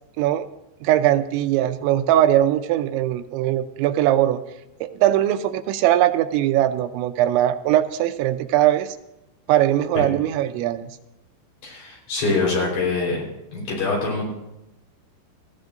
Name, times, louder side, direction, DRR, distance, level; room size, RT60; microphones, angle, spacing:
voice 1, 0.8-4.4 4.8-9.0 9.5-10.9, right 12 dB, 90° right, 8 dB, 3.1 m, -20 dB
voice 2, 11.6-13.2 13.5-14.2, left 3 dB, 60° left, -3 dB, 6.3 m, -24 dB
18.5 x 15.0 x 2.6 m, 0.91 s
omnidirectional pair, 5.2 m